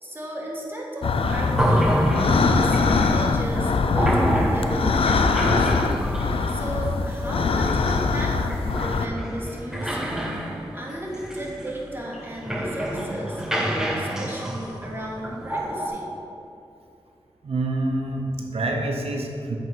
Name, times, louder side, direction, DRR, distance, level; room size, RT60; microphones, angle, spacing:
voice 1, 0.0-2.0 2.3-5.7 6.5-10.3 10.7-13.4 13.8-16.1, equal, 20° right, -3 dB, 1.4 m, -34 dB
sound 1, 1.0-9.1, left 4 dB, 70° left, 0.4 m, -22 dB
sound 2, 1.2-15.9, equal, 5° right, 1.1 m, -28 dB
voice 2, 17.4-19.6, right 2 dB, 85° right, 1 dB, 0.7 m, -27 dB
7.9 x 4.1 x 4.7 m, 2.6 s
wide cardioid pair, 60°, 10 cm